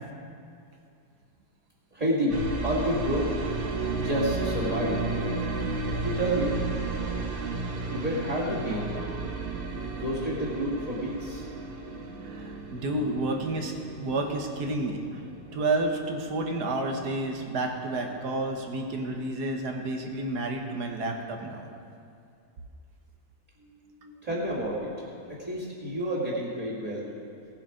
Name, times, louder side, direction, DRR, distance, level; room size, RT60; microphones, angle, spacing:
voice 1, 1.9-3.3 4.0-5.1 6.0-6.6 7.9-9.4 9.9-11.4 24.2-27.1, equal, 20° right, -6 dB, 2.3 m, -30 dB
sound 1, 2.3-18.1 18.4-19.1, right 3 dB, 40° right, 1.0 m, -34 dB
voice 2, 12.2-15.2 15.5-21.7 23.6-24.1 25.2-25.3 26.3-26.4, right 2 dB, 75° right, 3 dB, 1.6 m, -31 dB
17.5 x 7.5 x 5.1 m, 2.4 s
omnidirectional pair, 1.7 m